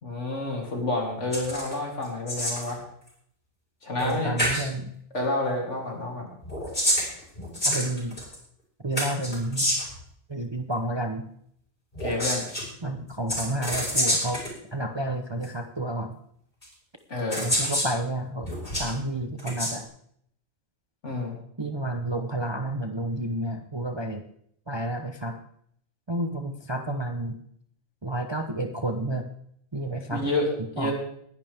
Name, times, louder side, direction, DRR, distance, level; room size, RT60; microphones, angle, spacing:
voice 1, 0.0-2.8 3.8-4.4 5.1-6.3 12.0-12.5 17.1-17.5 21.0-21.4 30.1-30.9, left 2 dB, 60° left, -1 dB, 3.4 m, -29 dB
sound 1, 1.3-1.7 2.0-2.7 4.0-4.1 4.4-4.7 6.4-8.4 9.0-10.0 11.9-12.6 13.3-14.5 15.4-15.5 16.6-16.7 17.3-17.9 18.4-18.9 19.4-19.7, equal, 35° left, 5.4 m, -27 dB
voice 2, 4.0-4.9 7.6-8.2 8.8-9.8 10.3-11.2 12.8-16.2 17.4-18.5 18.8-19.9 21.6-24.2 24.7-25.4 26.1-27.4 28.0-29.2 29.7-30.2 30.8-30.9, right 1 dB, 25° right, 5 dB, 0.7 m, -30 dB
20.0 x 11.0 x 3.5 m, 0.68 s
omnidirectional pair, 1.4 m